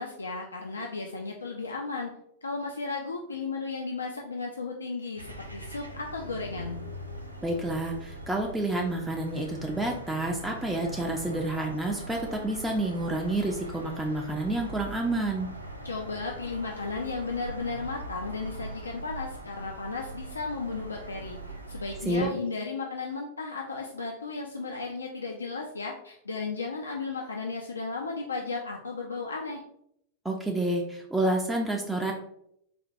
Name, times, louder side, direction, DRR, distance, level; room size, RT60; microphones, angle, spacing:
voice 1, 0.0-2.1 2.4-6.8 15.8-21.4 21.7-29.6, left 4 dB, 75° left, 1 dB, 0.3 m, -34 dB
sound 1, 5.2-22.2, right 1 dB, 85° right, 0.4 m, -41 dB
voice 2, 7.4-15.5 22.1-22.3 30.2-32.1, right 2 dB, 5° right, -1 dB, 0.4 m, -29 dB
4.1 x 2.1 x 2.5 m, 0.75 s
figure-of-eight pair, 90°, 0 cm